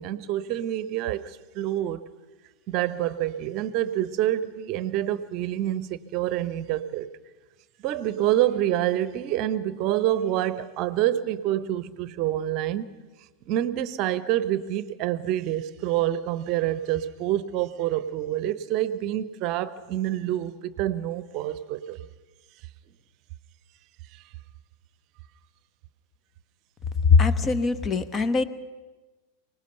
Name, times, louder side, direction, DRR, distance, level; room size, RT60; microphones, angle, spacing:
voice 1, 0.0-2.0 2.7-7.1 7.8-12.9 13.5-22.0 24.1-24.2, right 12 dB, 40° right, 0.8 m, -27 dB
voice 2, 27.0-28.4, left 5 dB, 20° left, 1.0 m, -21 dB
25.0 x 19.0 x 6.8 m
figure-of-eight pair, 90°, 0 cm